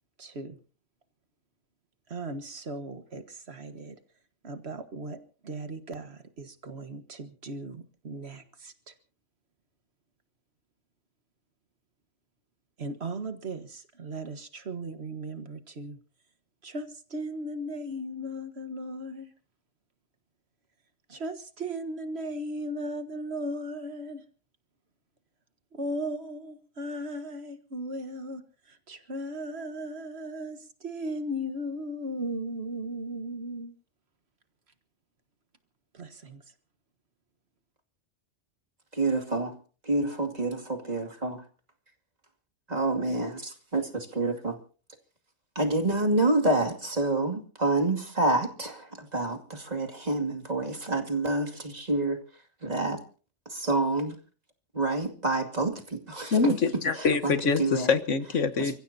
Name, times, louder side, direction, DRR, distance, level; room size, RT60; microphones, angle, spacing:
voice 1, 0.2-0.6 2.1-3.9 4.4-5.2 5.4-8.9 12.8-16.0 16.6-19.3 21.1-24.2 25.7-28.4 28.7-33.7 35.9-36.4, right 1 dB, 60° right, 1.8 m, -37 dB
voice 2, 38.9-39.6 39.8-41.4 42.7-44.6 45.6-52.2 52.6-53.0 53.5-54.2 54.7-56.6 56.9-57.9 58.6-58.7, right 2 dB, 35° right, 2.6 m, -28 dB
voice 3, 56.3-58.7, left 4 dB, 90° left, 1.6 m, -25 dB
30.0 x 15.5 x 2.8 m
omnidirectional pair, 1.2 m